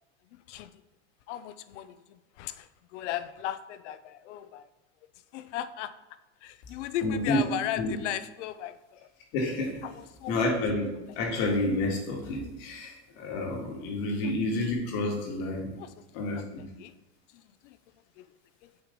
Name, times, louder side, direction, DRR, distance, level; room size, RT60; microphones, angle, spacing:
voice 1, 0.3-0.8 1.3-4.7 5.3-5.9 6.4-9.1 9.8-10.3 15.8-16.9 17.3-17.8 18.2-18.3 18.6-18.7, left 11 dB, 90° left, 13 dB, 0.6 m, -37 dB
voice 2, 7.0-7.4 7.8-7.9 9.3-9.8 10.3-15.7 16.1-16.6, left 2 dB, 60° left, 0 dB, 2.0 m, -29 dB
8.0 x 3.2 x 5.2 m, 1.0 s
supercardioid pair, 150°, 35 cm